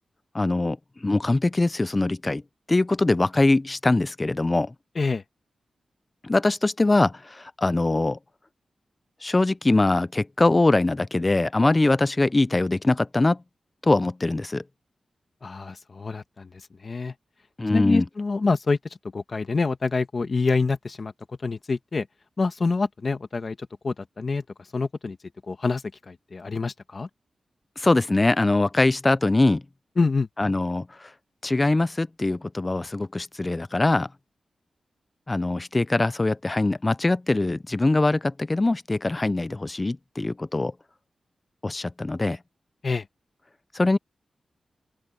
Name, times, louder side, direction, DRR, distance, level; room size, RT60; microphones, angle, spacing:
voice 1, 0.3-2.4 2.7-4.7 6.2-8.2 9.2-13.4 13.8-14.6 17.6-18.0 27.8-29.6 30.4-31.1 31.4-34.1 35.3-40.7 41.6-42.4 43.7-44.0, left 2 dB, 20° left, 0.4 m, -22 dB
voice 2, 15.4-16.5 16.8-17.1 17.7-18.8 19.1-21.1 21.4-22.1 22.4-23.6 23.8-24.4 24.7-25.2 25.5-27.1 30.0-30.3 42.8-43.0, left 4 dB, 40° left, 1.3 m, -26 dB
open air
wide cardioid pair, 145°, 0 cm